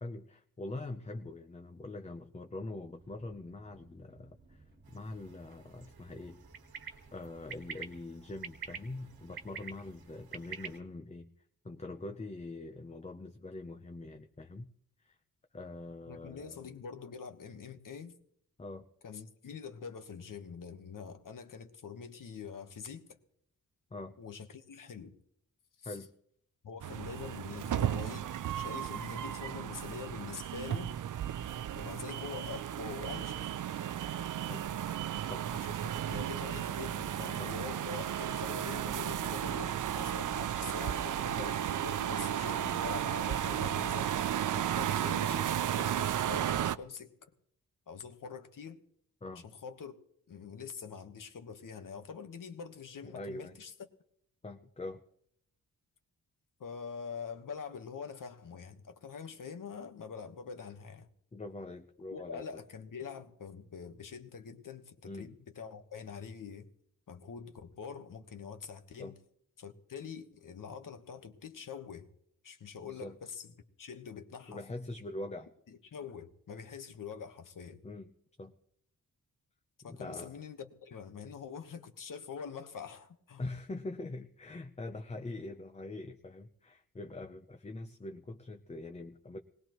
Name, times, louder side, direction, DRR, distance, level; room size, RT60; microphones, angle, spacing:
voice 1, 0.0-6.4 7.1-11.3 11.6-14.7 15.0-15.2 15.5-16.7 18.6-18.9 23.9-24.2 25.8-26.1 34.5-34.7 35.2-35.5 37.2-37.5 49.2-49.4 53.0-53.6 54.4-55.0 61.3-62.4 65.0-65.3 69.0-69.2 72.8-73.2 74.5-75.5 77.8-78.5 79.9-80.4 83.4-89.4, left 2 dB, 20° left, 0.6 m, -43 dB
sound 1, 2.9-10.3, right 3 dB, 30° right, 1.5 m, -60 dB
sound 2, 4.9-10.8, right 6 dB, 85° right, 1.5 m, -48 dB
voice 2, 16.1-18.1 19.0-23.2 24.2-25.2 25.8-26.0 26.6-30.9 31.7-33.5 35.5-44.2 44.5-47.3 47.9-48.8 49.3-49.9 50.3-53.7 56.6-61.1 62.1-66.7 67.1-69.1 69.6-72.1 72.4-73.5 73.8-74.6 75.7-77.8 79.8-83.4, left 6 dB, 60° left, 1.3 m, -45 dB
sound 3, 26.8-46.8, right 10 dB, 60° right, 0.5 m, -34 dB
20.0 x 19.5 x 3.1 m
wide cardioid pair, 150°, 36 cm